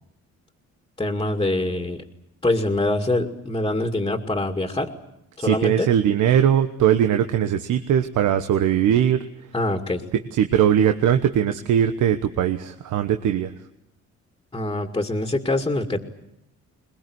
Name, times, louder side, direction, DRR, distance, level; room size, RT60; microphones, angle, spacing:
voice 1, 1.0-2.0 2.4-4.9 5.4-5.9 9.5-10.0 14.5-16.0, left 2 dB, 15° left, 3 dB, 2.3 m, -24 dB
voice 2, 5.4-9.2 10.3-13.5, right 9 dB, 80° right, 8 dB, 1.3 m, -20 dB
21.5 x 21.0 x 9.6 m, 0.80 s
cardioid pair, 90°, 30 cm